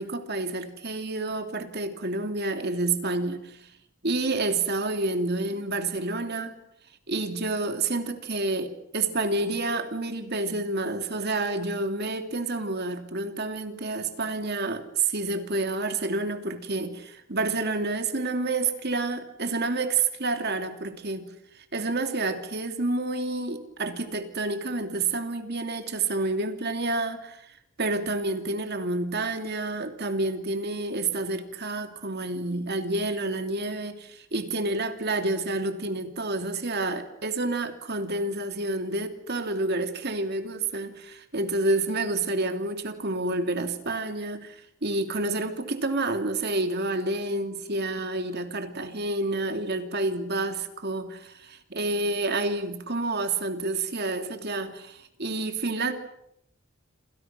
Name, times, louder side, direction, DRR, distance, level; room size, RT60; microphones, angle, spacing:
voice 1, 0.0-3.6 4.0-6.5 7.1-21.3 21.7-55.9, right 2 dB, 50° right, 6 dB, 3.0 m, -29 dB
28.5 x 27.0 x 6.2 m, 0.77 s
head